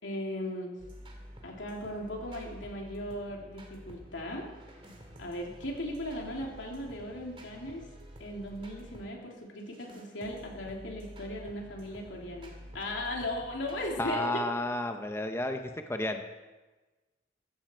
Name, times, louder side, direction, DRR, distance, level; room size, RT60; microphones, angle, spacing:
voice 1, 0.0-0.7 1.4-4.5 5.2-7.8 8.2-14.3, left 1 dB, 90° left, -1 dB, 3.1 m, -37 dB
sound 1, 0.8-9.1 9.6-14.1, equal, 30° right, 2.4 m, -50 dB
voice 2, 14.0-16.2, left 1 dB, 15° left, 6 dB, 0.7 m, -32 dB
15.0 x 14.0 x 4.5 m, 1.2 s
head